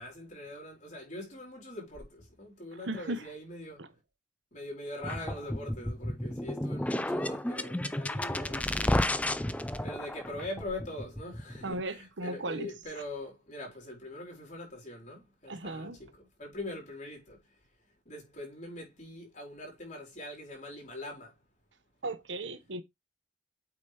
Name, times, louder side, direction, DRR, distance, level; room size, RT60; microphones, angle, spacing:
voice 1, 0.0-3.8 4.5-9.0 9.8-17.4 18.1-21.4, left 1 dB, 40° left, 4.3 m, -43 dB
voice 2, 2.8-3.3 3.8-3.9 11.6-12.7 15.5-16.0 22.0-22.8, right 2 dB, 80° right, 1.1 m, -36 dB
sound 1, 5.0-11.8, left 1 dB, 10° left, 0.4 m, -32 dB
8.2 x 5.1 x 3.4 m
head